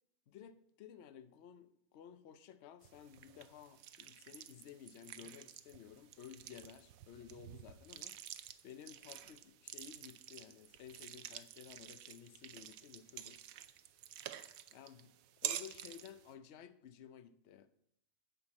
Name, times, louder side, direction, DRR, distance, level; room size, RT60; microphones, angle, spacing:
voice 1, 0.3-8.4 8.6-13.4 14.7-15.1 15.4-17.7, left 8 dB, 60° left, 0.8 m, -55 dB
sound 1, 2.8-16.3, right 11 dB, 75° right, 1.0 m, -49 dB
11.0 x 7.8 x 4.2 m
omnidirectional pair, 1.6 m